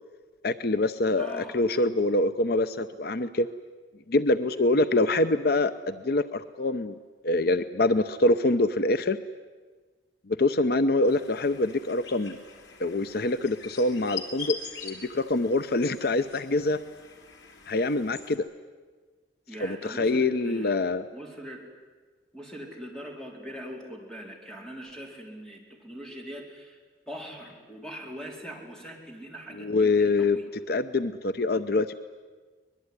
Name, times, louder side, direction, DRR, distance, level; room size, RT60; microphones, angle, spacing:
voice 1, 0.4-3.5 4.1-7.0 7.2-9.2 10.3-12.4 12.8-14.6 14.8-16.8 17.7-18.4 19.6-21.0 29.5-30.4 30.7-32.0, left 2 dB, 60° left, 12 dB, 0.8 m, -25 dB
voice 2, 1.2-1.6 19.5-20.8 21.1-21.6 22.3-26.8 27.1-30.5, equal, 5° left, 0 dB, 4.3 m, -41 dB
sound 1, 11.1-18.4, left 6 dB, 90° left, 3.4 m, -43 dB
23.5 x 21.0 x 9.8 m, 1.4 s
head